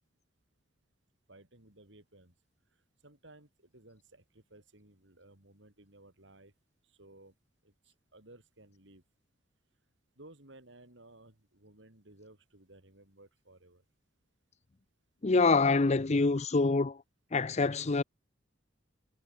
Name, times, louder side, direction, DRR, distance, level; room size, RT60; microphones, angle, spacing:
voice 1, 1.3-2.3 3.0-6.5 6.8-7.3 7.6-9.0 10.2-13.8, right 2 dB, 70° right, 4.4 m, -57 dB
voice 2, 15.2-17.0 17.3-18.0, left 3 dB, 35° left, 0.6 m, -26 dB
head